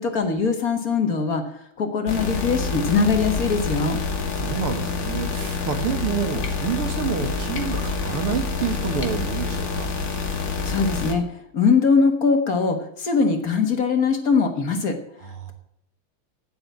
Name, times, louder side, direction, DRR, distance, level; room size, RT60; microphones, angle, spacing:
voice 1, 0.0-1.4 1.8-4.0 10.6-11.2 11.5-15.0, left 5 dB, 45° left, 5 dB, 1.8 m, -21 dB
sound 1, 2.1-11.1, left 4 dB, 60° left, 2.3 m, -27 dB
voice 2, 4.3-9.9 15.2-15.5, right 7 dB, 85° right, 6 dB, 2.6 m, -28 dB
8.9 x 8.9 x 9.2 m, 0.75 s
omnidirectional pair, 2.4 m